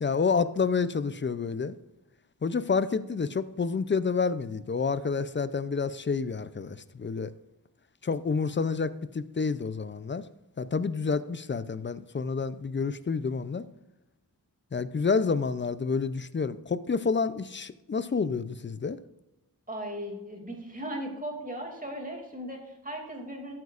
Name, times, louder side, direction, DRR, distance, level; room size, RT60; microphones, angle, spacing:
voice 1, 0.0-1.7 2.4-7.3 8.0-10.2 10.6-13.7 14.7-19.0, left 5 dB, 30° left, 0.5 m, -29 dB
voice 2, 19.7-23.6, right 1 dB, 20° right, 2.6 m, -37 dB
13.0 x 8.0 x 2.5 m
wide cardioid pair, 115°, 37 cm